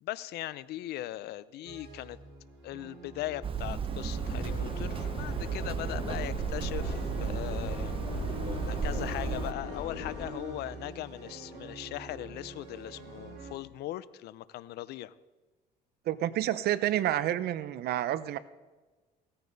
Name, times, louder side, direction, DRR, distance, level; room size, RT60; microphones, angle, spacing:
voice 1, 0.0-2.2 2.6-8.0 8.7-15.1, left 15 dB, 75° left, 18 dB, 0.5 m, -39 dB
sound 1, 1.6-13.5, right 1 dB, 90° right, 4.6 m, -45 dB
Hammer, 3.4-9.5, right 6 dB, 30° right, 0.9 m, -34 dB
Subway metro underground, 4.2-10.3, left 5 dB, 50° left, 1.6 m, -40 dB
voice 2, 16.1-18.4, right 13 dB, 70° right, 15 dB, 0.7 m, -29 dB
16.5 x 14.0 x 4.0 m, 1.3 s
cardioid pair, 110°, 17 cm